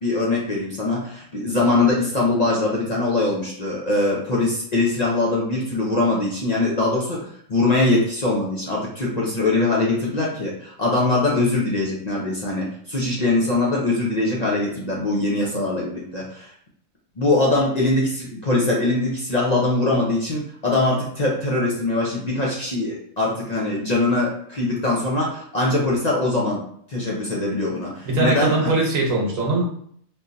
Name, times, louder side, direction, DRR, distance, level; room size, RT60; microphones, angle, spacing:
voice 1, 0.0-16.5 17.2-26.6 26.9-28.7, left 2 dB, 40° left, -4 dB, 0.6 m, -22 dB
voice 2, 28.0-29.6, right 2 dB, 80° right, -1 dB, 1.3 m, -21 dB
3.7 x 2.9 x 2.6 m, 0.63 s
omnidirectional pair, 1.4 m